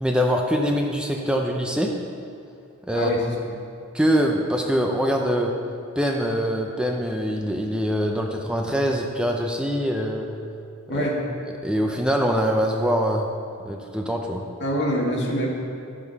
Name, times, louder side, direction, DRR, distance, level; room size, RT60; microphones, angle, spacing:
voice 1, 0.0-1.9 2.9-3.1 3.9-5.5 6.0-10.3 10.9-11.1 11.6-13.3 13.6-14.4, equal, 5° right, 1 dB, 0.5 m, -23 dB
voice 2, 2.9-3.3 10.9-11.2 14.6-15.5, equal, 55° left, -4 dB, 1.9 m, -24 dB
11.5 x 7.3 x 4.0 m, 2.5 s
head